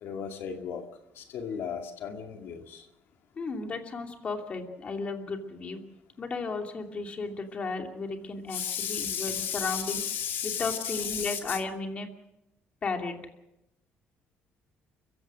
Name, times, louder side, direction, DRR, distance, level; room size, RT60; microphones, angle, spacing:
voice 1, 0.0-0.8 1.2-2.8 8.5-11.6, left 8 dB, 65° left, 2.2 m, -34 dB
voice 2, 3.4-5.8 6.2-10.0 10.4-12.1 12.8-13.2, left 4 dB, 30° left, 2.7 m, -34 dB
29.5 x 16.0 x 6.3 m
cardioid pair, 150°, 4 cm